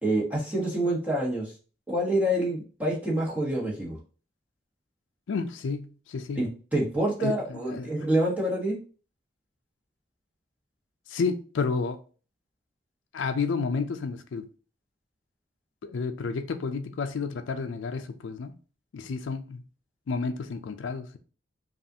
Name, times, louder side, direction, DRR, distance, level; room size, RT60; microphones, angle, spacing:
voice 1, 0.0-1.5 1.9-4.0 6.3-8.8, right 1 dB, 10° right, 1.2 m, -27 dB
voice 2, 5.3-6.4 7.2-7.9 11.1-12.0 13.1-14.5 15.8-18.5 18.9-19.6 20.1-21.2, left 4 dB, 85° left, 0.4 m, -31 dB
5.3 x 2.4 x 2.7 m
head